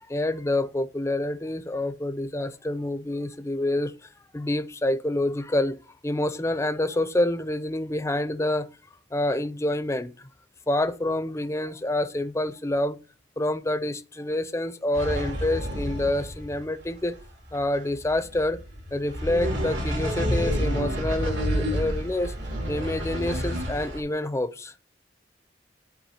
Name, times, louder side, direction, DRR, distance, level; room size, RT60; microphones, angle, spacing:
voice 1, 0.1-3.9 4.3-5.8 6.0-8.7 9.1-10.3 10.7-13.0 13.4-17.2 17.5-18.6 18.9-22.3 22.7-24.7, left 1 dB, 15° left, 0.5 m, -27 dB
sound 1, 14.9-24.0, equal, 80° right, 3.1 m, -29 dB
12.0 x 4.9 x 2.9 m
head